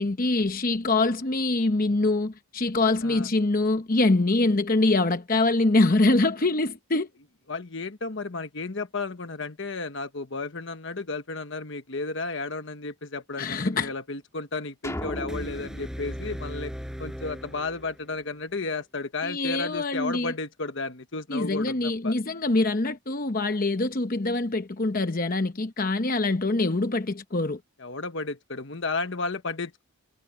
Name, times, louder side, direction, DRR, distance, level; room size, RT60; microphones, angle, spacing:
voice 1, 0.0-7.1 13.4-13.9 19.2-20.3 21.3-27.6, left 2 dB, 40° left, 0.9 m, -24 dB
voice 2, 7.5-16.7 17.0-22.1 27.8-29.8, left 3 dB, 55° left, 1.2 m, -33 dB
sound 1, 14.8-17.3, left 1 dB, 15° left, 2.4 m, -38 dB
sound 2, 15.3-18.3, equal, ahead, 5.7 m, -37 dB
head